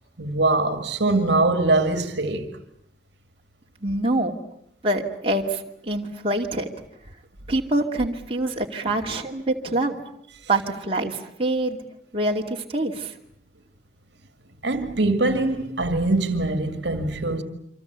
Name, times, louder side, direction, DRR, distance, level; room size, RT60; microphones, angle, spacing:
voice 1, 0.2-2.6 14.6-17.4, right 2 dB, 60° right, 2.2 m, -22 dB
voice 2, 3.8-4.4 4.8-6.7 7.5-10.0 10.5-11.8 12.1-13.1, right 2 dB, 30° right, 2.5 m, -25 dB
28.0 x 26.0 x 8.2 m
head